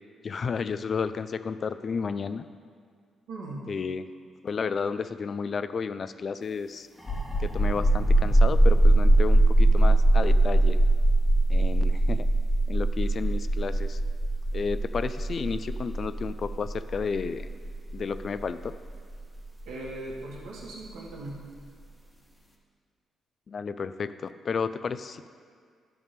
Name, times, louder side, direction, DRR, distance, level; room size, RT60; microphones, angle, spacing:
voice 1, 0.2-2.5 3.7-4.1 4.4-6.9 7.4-10.8 11.5-12.3 12.7-14.0 14.5-17.5 17.9-18.7 23.5-25.3, left 5 dB, 50° left, 13 dB, 0.3 m, -32 dB
voice 2, 3.3-3.6 19.7-21.4, right 2 dB, 85° right, -4 dB, 1.8 m, -39 dB
sound 1, 7.0-20.4, right 1 dB, 10° left, 1.3 m, -22 dB
11.0 x 3.6 x 6.6 m, 2.1 s
cardioid pair, 75°, 0 cm